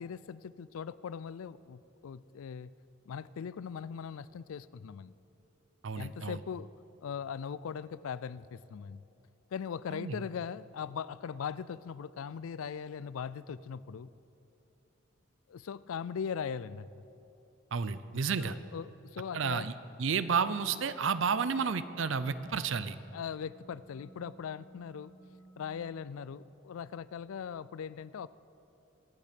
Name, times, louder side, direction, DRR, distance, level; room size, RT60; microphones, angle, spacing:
voice 1, 0.0-2.7 3.1-5.1 6.0-6.7 7.0-9.0 9.5-14.1 15.5-16.9 18.4-19.7 23.1-25.1 25.6-28.3, left 7 dB, 90° left, 18 dB, 0.4 m, -40 dB
voice 2, 5.8-6.4 9.9-10.2 17.7-18.6 19.3-19.7 20.0-22.9, right 5 dB, 70° right, 14 dB, 0.5 m, -31 dB
sound 1, 21.0-26.1, right 1 dB, 5° left, 1.3 m, -57 dB
23.5 x 8.3 x 5.2 m, 2.9 s
head